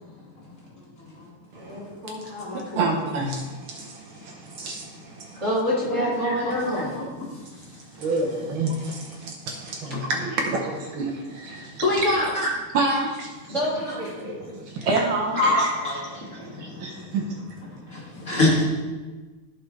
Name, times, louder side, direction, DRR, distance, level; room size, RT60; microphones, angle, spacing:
voice 1, 1.5-3.0 5.3-6.9 11.8-12.3 13.5-14.5 15.8-16.2, left 1 dB, 35° right, -6 dB, 2.5 m, -27 dB
voice 2, 2.7-5.4 7.9-12.0 12.7-13.3 14.2-15.7 16.3-17.6, right 3 dB, 70° right, 1 dB, 1.6 m, -28 dB
voice 3, 5.9-6.4 6.7-7.6 12.3-12.5 13.9-14.0 14.3-14.4 15.3-16.0 16.2-17.2 17.7-18.6, left 2 dB, 40° left, -6 dB, 2.3 m, -27 dB
14.5 x 5.0 x 3.1 m, 1.3 s
omnidirectional pair, 2.4 m